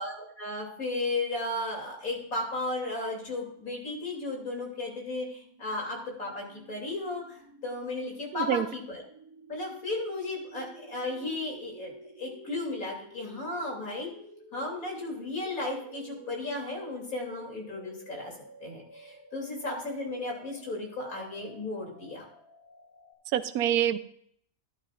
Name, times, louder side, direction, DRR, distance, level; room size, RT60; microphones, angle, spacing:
voice 1, 0.0-9.0 9.5-11.9 12.2-14.1 14.5-18.3 18.6-22.3, left 2 dB, 70° left, -1 dB, 3.5 m, -35 dB
sound 1, 4.0-23.1, right 2 dB, 10° right, 3.3 m, -52 dB
voice 2, 8.3-8.7 23.3-24.0, right 11 dB, 80° right, 13 dB, 1.1 m, -26 dB
13.5 x 11.5 x 2.5 m, 0.65 s
omnidirectional pair, 1.6 m